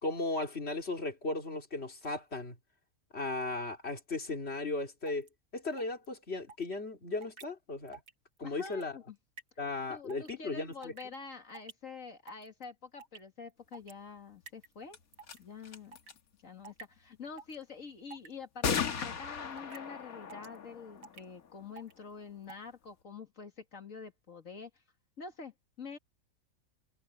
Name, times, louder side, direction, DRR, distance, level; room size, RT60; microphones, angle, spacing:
voice 1, 0.0-2.6 3.1-8.0 8.4-9.0 9.6-11.1, left 2 dB, 45° left, 3.6 m, -36 dB
sound 1, 5.1-5.3 5.8-6.1 6.5-6.7 7.2-7.4 7.9-8.1 8.4-8.9 9.4-9.5 10.1-10.3 10.7-11.2 11.5-11.7 12.3-12.6 13.0-13.2 13.7-13.9 14.5-14.7 15.1-15.4 15.9-16.1 16.6-16.8 17.4-17.6 18.1-18.3 18.8-19.0 19.6-19.8 20.3-20.6 21.0-21.2 21.8-21.9 22.4-22.6, right 5 dB, 70° right, 1.8 m, -49 dB
voice 2, 8.4-9.2 9.9-15.0 15.4-16.0 16.4-24.7 25.2-26.0, left 5 dB, 65° left, 2.4 m, -47 dB
sound 2, 14.9-15.0 15.2-15.4 15.6-16.2 18.6-22.0, left 6 dB, 85° left, 1.9 m, -37 dB
omnidirectional pair, 1.5 m